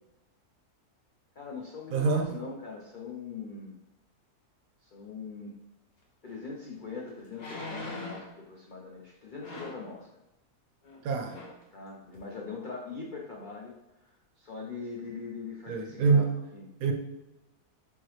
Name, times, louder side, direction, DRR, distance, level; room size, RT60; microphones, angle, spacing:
voice 1, 1.4-3.8 4.8-5.5 6.2-10.1 11.7-13.7 14.4-16.3 16.5-16.6, left 4 dB, 65° left, -3 dB, 0.4 m, -41 dB
voice 2, 1.9-2.4 11.0-11.4 15.7-16.3 16.8-16.9, right 4 dB, 70° right, 3 dB, 1.0 m, -25 dB
sound 1, 6.3-6.4 7.3-8.3 9.4-9.9 10.8-11.0 11.3-11.6 12.1-12.2, left 2 dB, 45° left, 1.1 m, -41 dB
4.5 x 3.6 x 3.1 m, 0.94 s
omnidirectional pair, 1.7 m